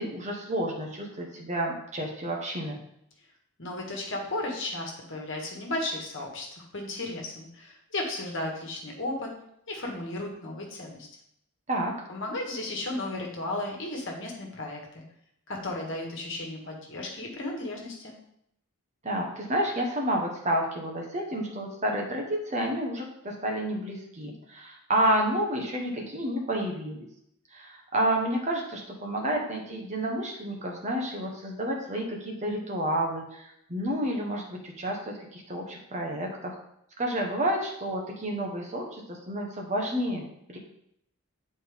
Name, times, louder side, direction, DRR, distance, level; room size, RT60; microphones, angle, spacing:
voice 1, 0.0-2.8 11.7-11.9 19.0-27.1 27.5-36.5 37.0-40.2 40.5-40.6, right 1 dB, 30° right, 0 dB, 1.1 m, -30 dB
voice 2, 3.6-9.3 9.7-11.1 12.1-15.0 15.5-18.1, left 2 dB, 55° left, 0 dB, 1.5 m, -34 dB
8.7 x 4.3 x 3.5 m, 0.75 s
head